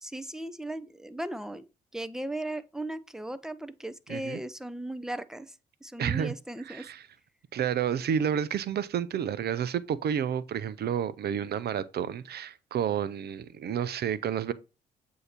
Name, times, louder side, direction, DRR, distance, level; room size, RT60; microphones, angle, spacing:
voice 1, 0.0-1.6 1.9-5.5 5.8-6.9, right 1 dB, 5° right, 0.7 m, -37 dB
voice 2, 4.1-4.4 6.0-6.3 6.7-7.0 7.5-14.5, right 8 dB, 55° right, 0.6 m, -30 dB
7.9 x 2.8 x 4.3 m
hypercardioid pair, 45°, 19 cm